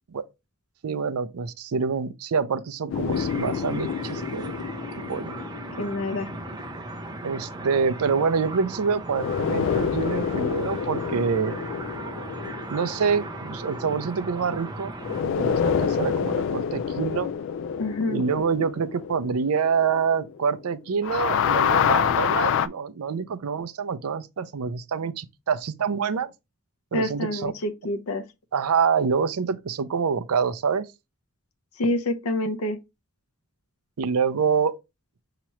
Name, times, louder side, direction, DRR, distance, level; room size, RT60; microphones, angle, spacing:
voice 1, 0.8-4.5 5.1-5.3 7.2-11.6 12.7-14.9 15.2-17.3 18.1-26.3 26.9-27.5 28.5-30.9 34.0-34.7, right 6 dB, 85° right, 0.5 m, -26 dB
sound 1, 2.9-7.4 9.1-14.6 15.0-20.7 20.9-22.7, left 7 dB, 60° left, 0.3 m, -27 dB
sound 2, 3.1-15.2, right 2 dB, 20° right, 0.6 m, -37 dB
voice 2, 5.8-6.3 17.8-18.2 26.9-28.2 31.8-32.8, left 1 dB, 80° left, 0.7 m, -27 dB
5.8 x 2.9 x 3.0 m
head